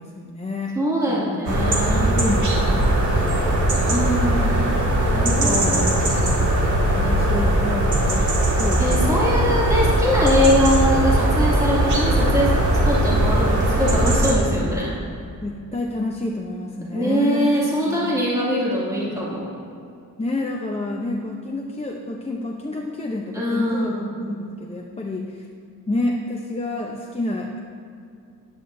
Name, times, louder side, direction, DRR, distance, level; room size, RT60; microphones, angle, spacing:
voice 1, 0.0-0.8 1.0-1.3 1.9-2.9 3.2-3.8 5.1-5.8 6.3-6.4 6.9-8.3 8.6-9.1 15.4-18.1 20.2-25.4 25.9-27.6, left 2 dB, 20° left, -1 dB, 0.7 m, -29 dB
voice 2, 0.8-2.0 3.9-4.7 5.1-6.0 8.8-12.6 12.9-14.9 16.9-19.5 23.3-24.1, equal, 10° right, -7 dB, 2.4 m, -22 dB
sound 1, 1.5-14.3, right 1 dB, 55° right, 2.0 m, -19 dB
13.0 x 10.5 x 2.7 m, 2.5 s
wide cardioid pair, 115°, 34 cm